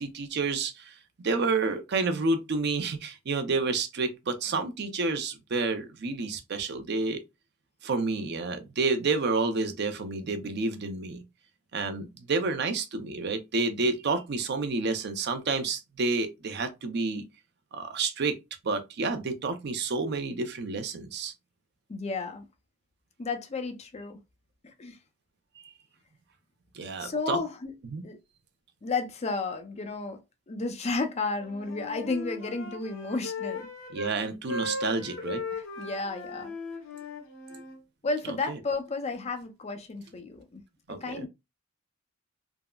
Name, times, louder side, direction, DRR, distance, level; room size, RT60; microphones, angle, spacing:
voice 1, 0.0-7.2 7.8-11.2 11.7-17.2 17.7-18.4 18.6-21.3 26.7-27.4 27.9-28.0 33.9-35.4 38.5-38.6 40.9-41.3, right 3 dB, 55° right, 0.5 m, -29 dB
voice 2, 21.9-22.4 23.2-24.2 24.6-25.0 27.0-27.8 28.0-28.2 28.8-30.2 30.5-33.7 35.5-36.5 38.0-40.6 40.9-41.3, left 3 dB, 30° left, 0.5 m, -32 dB
Wind instrument woodwind instrument, 31.3-34.2 34.5-37.8, left 3 dB, 75° left, 1.2 m, -37 dB
3.5 x 2.0 x 2.2 m
head